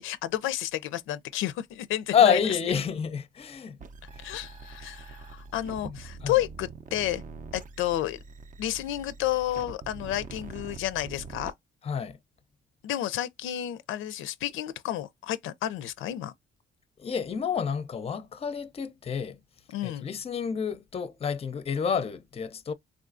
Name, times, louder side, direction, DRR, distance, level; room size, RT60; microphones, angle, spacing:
voice 1, 0.0-2.4 4.2-7.2 7.5-8.2 8.6-11.5 12.8-16.3 19.7-20.1, left 13 dB, 85° left, 0.4 m, -31 dB
voice 2, 2.1-3.8 4.1-4.2 5.8-6.4 11.8-12.2 17.0-19.4 19.8-22.7, left 7 dB, 30° left, 0.5 m, -28 dB
sound 1, 3.8-11.5, right 5 dB, 40° right, 0.5 m, -44 dB
3.5 x 2.4 x 2.4 m
cardioid pair, 90°, 20 cm